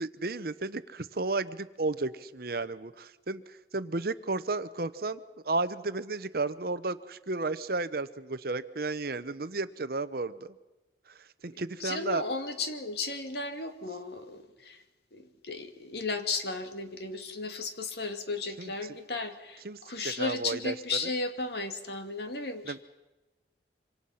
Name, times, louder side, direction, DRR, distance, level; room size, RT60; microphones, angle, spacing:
voice 1, 0.0-10.5 11.1-12.2 18.6-18.7 19.6-20.7 22.6-22.8, right 3 dB, 55° right, 13 dB, 0.9 m, -33 dB
voice 2, 11.5-14.8 15.1-22.8, left 3 dB, 65° left, 7 dB, 2.2 m, -35 dB
26.0 x 25.5 x 5.7 m, 1.1 s
head